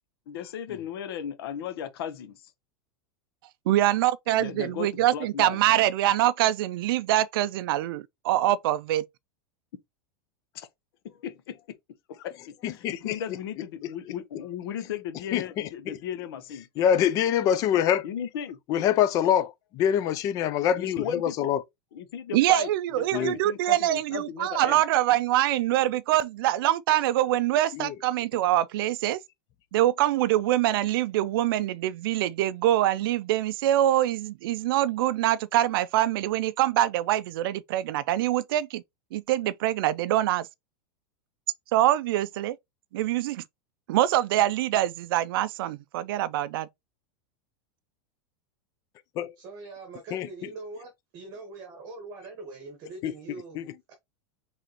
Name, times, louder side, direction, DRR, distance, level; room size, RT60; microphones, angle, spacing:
voice 1, 0.3-2.4 4.3-5.6 10.5-10.7 11.0-11.6 12.1-16.7 18.0-18.6 20.8-21.5 21.9-22.7 23.1-24.8, left 9 dB, 65° left, 0.9 m, -36 dB
voice 2, 3.7-9.0 22.3-29.2 29.7-38.8 39.1-40.5 41.7-42.6 42.9-43.4 43.9-46.7, right 14 dB, 60° right, 0.4 m, -24 dB
voice 3, 12.6-13.2 15.3-16.0 16.8-18.0 18.7-21.6 23.1-23.4 27.7-27.9 49.2-49.3 50.1-50.3 53.0-53.1 53.6-53.7, left 9 dB, 25° left, 0.4 m, -25 dB
voice 4, 49.4-53.6 53.9-54.0, right 3 dB, 30° right, 1.2 m, -42 dB
4.9 x 3.5 x 2.9 m
supercardioid pair, 170°, 13 cm